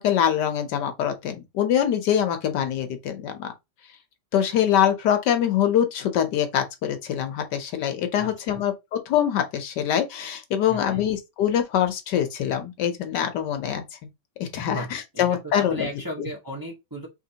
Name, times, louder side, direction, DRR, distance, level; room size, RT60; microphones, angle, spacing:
voice 1, 0.0-3.5 4.3-13.8 14.4-15.9, left 9 dB, 75° left, 1.4 m, -24 dB
voice 2, 8.2-8.7 10.7-11.1 14.7-17.1, left 1 dB, 15° right, 1.0 m, -35 dB
4.6 x 3.7 x 2.8 m
omnidirectional pair, 1.9 m